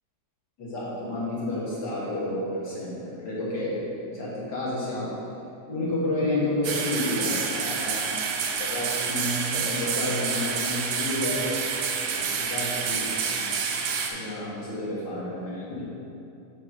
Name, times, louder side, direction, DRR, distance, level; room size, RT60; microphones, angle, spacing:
voice 1, 0.6-5.1 5.7-11.6 12.0-13.5 14.1-15.8, left 1 dB, 40° left, -8 dB, 1.8 m, -30 dB
sound 1, 6.6-14.1, right 6 dB, 85° right, 1.6 m, -28 dB
7.8 x 3.6 x 6.0 m, 2.8 s
omnidirectional pair, 3.8 m